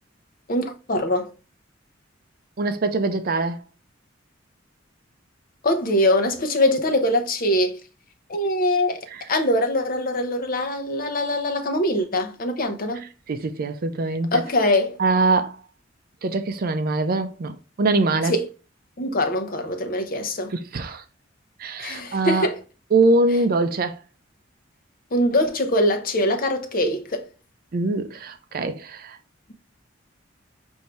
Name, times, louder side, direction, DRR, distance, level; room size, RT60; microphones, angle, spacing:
voice 1, 0.5-1.3 5.6-7.8 8.3-9.0 9.3-13.1 14.3-15.0 18.3-18.5 19.0-20.5 21.8-22.6 25.1-27.2, left 1 dB, 45° left, 0.7 m, -23 dB
voice 2, 2.6-3.6 9.1-9.2 13.3-14.4 15.0-15.6 16.2-18.3 20.5-21.0 21.6-22.5 22.9-24.0 27.7-29.2, right 3 dB, 50° right, 0.5 m, -23 dB
5.7 x 2.7 x 3.1 m
head